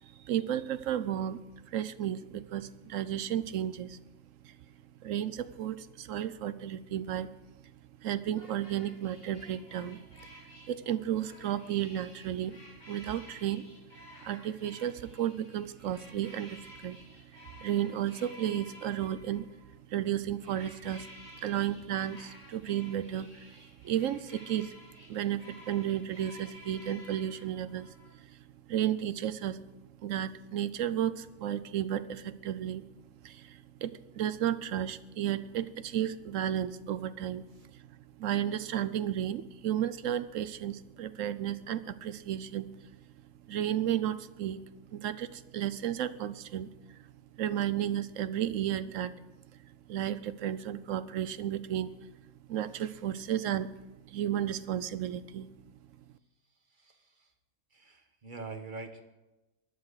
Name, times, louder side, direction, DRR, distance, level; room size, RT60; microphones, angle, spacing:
voice 1, 0.0-4.0 4.4-4.6 5.0-7.3 8.0-10.3 10.6-12.6 12.9-13.7 14.2-17.0 17.3-19.5 19.9-21.1 21.3-24.8 25.1-28.4 28.7-29.6 30.0-32.8 33.2-37.4 37.7-37.8 38.2-42.7 43.5-44.6 44.9-47.0 47.4-49.1 49.9-51.9 52.5-53.7 54.1-55.5, right 11 dB, 70° right, 15 dB, 1.0 m, -33 dB
sound 1, 8.3-19.7 20.4-28.1, left 1 dB, 30° left, 3.5 m, -53 dB
voice 2, 56.7-57.3 57.7-59.0, right 3 dB, 35° right, 6 dB, 1.5 m, -44 dB
19.5 x 12.0 x 4.8 m, 1.0 s
omnidirectional pair, 1.4 m